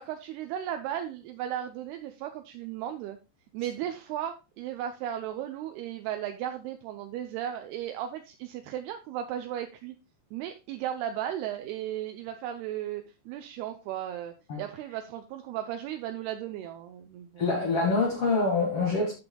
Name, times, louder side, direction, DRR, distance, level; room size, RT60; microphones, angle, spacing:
voice 1, 0.0-3.2 3.5-9.9 10.3-17.4, right 11 dB, 85° right, 2.3 m, -35 dB
voice 2, 17.4-19.1, left 3 dB, 50° left, 1.8 m, -25 dB
11.5 x 6.9 x 2.2 m
omnidirectional pair, 5.2 m